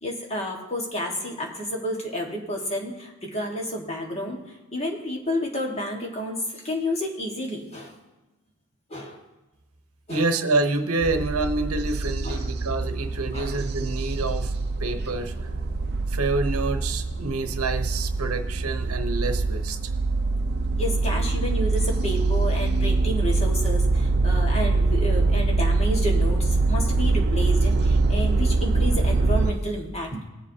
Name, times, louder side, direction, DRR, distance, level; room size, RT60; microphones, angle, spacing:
voice 1, 0.0-7.9 8.9-9.2 10.1-10.3 12.2-12.5 13.3-13.6 20.8-30.2, equal, 30° left, 0 dB, 1.6 m, -30 dB
voice 2, 10.1-14.5 14.8-15.4 16.1-19.8, right 3 dB, 75° right, 7 dB, 0.9 m, -27 dB
sound 1, 11.0-29.5, right 3 dB, 45° right, 0.6 m, -24 dB
20.0 x 7.4 x 2.8 m, 1.1 s
head